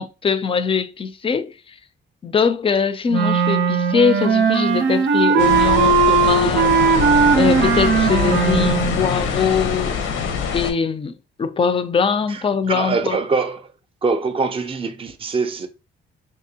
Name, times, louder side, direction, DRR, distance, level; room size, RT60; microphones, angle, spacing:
voice 1, 0.0-1.5 2.2-7.0 7.3-10.0 10.5-13.2, left 6 dB, 30° left, 0.4 m, -22 dB
Wind instrument woodwind instrument, 3.1-9.0, right 5 dB, 70° right, 0.6 m, -17 dB
sound 1, 5.4-10.7, left 6 dB, 85° left, 0.7 m, -24 dB
voice 2, 12.3-13.7 14.0-15.7, right 4 dB, 30° right, 0.5 m, -23 dB
3.5 x 2.9 x 2.8 m
cardioid pair, 90°, 20 cm